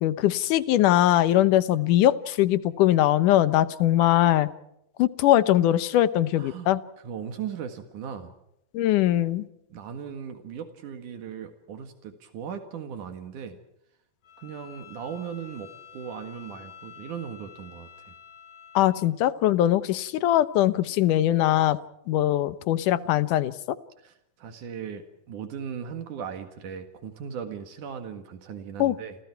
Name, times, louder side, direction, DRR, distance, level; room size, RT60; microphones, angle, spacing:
voice 1, 0.0-4.5 5.0-6.8 8.7-9.5 18.8-21.8 22.1-23.5 28.8-29.0, left 13 dB, 85° left, 15 dB, 2.5 m, -21 dB
voice 2, 6.4-6.7 7.0-8.3 9.7-13.6 14.4-18.1 24.0-29.2, right 7 dB, 80° right, 7 dB, 3.3 m, -38 dB
Bowed string instrument, 14.2-19.1, left 8 dB, 60° left, 5.4 m, -49 dB
30.0 x 27.0 x 4.7 m, 0.81 s
omnidirectional pair, 3.6 m